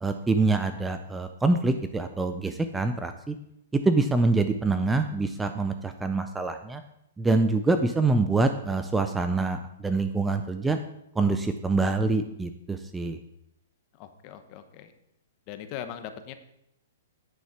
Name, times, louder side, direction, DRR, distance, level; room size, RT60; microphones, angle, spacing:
voice 1, 0.0-3.4 3.7-6.8 7.2-10.8 11.2-13.2, right 3 dB, 5° right, 8 dB, 0.4 m, -25 dB
voice 2, 14.0-14.9 15.5-16.3, left 9 dB, 35° left, 9 dB, 0.9 m, -40 dB
9.4 x 6.4 x 5.8 m, 0.80 s
hypercardioid pair, 155°, 0 cm